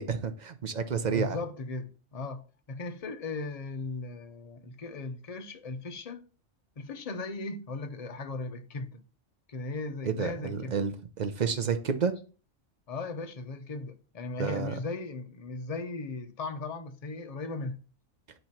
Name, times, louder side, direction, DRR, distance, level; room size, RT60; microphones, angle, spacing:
voice 1, 0.0-1.4 10.0-10.9 11.2-12.1 14.4-14.7, right 6 dB, 45° right, 0.7 m, -30 dB
voice 2, 1.0-6.2 6.8-9.0 9.5-10.8 12.9-17.8, left 3 dB, 40° left, 0.6 m, -37 dB
8.9 x 3.1 x 5.8 m
omnidirectional pair, 1.4 m